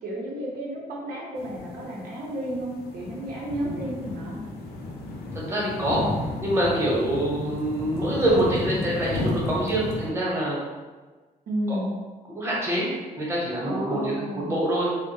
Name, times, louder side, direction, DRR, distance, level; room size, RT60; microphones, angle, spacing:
voice 1, 0.0-4.4 11.5-11.9 13.7-14.5, equal, 80° right, -4 dB, 0.6 m, -32 dB
sound 1, 1.3-10.1, left 2 dB, 80° left, 0.5 m, -33 dB
voice 2, 5.3-6.0 6.4-10.6 11.7-11.8 12.3-12.9 13.2-14.9, right 1 dB, 15° right, -5 dB, 0.8 m, -25 dB
2.2 x 2.0 x 3.0 m, 1.3 s
cardioid pair, 95°, 16 cm